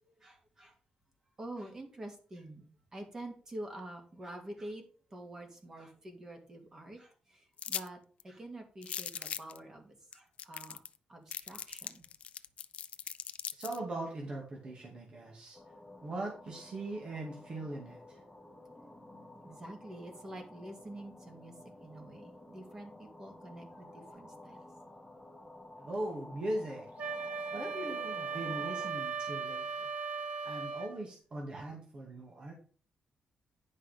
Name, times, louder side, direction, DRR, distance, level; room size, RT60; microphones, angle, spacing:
voice 1, 0.0-0.7 1.4-4.8 5.1-10.8 11.1-12.1 19.4-21.5 21.8-24.7, right 1 dB, 25° right, 3 dB, 2.2 m, -47 dB
sound 1, 7.6-7.9 8.2-8.3 8.8-9.6 10.1-10.2 10.4-11.0 11.3-13.8, left 8 dB, 55° left, 0.5 m, -39 dB
voice 2, 13.6-15.6 16.0-18.2 25.8-27.1 27.5-29.9 30.4-32.5, right 1 dB, 40° right, -1 dB, 2.2 m, -40 dB
sound 2, 15.5-28.9, left 1 dB, 5° left, 1.5 m, -53 dB
Wind instrument woodwind instrument, 27.0-31.0, right 5 dB, 60° right, 1.3 m, -37 dB
10.0 x 5.5 x 5.1 m, 0.40 s
wide cardioid pair, 165°, 2 cm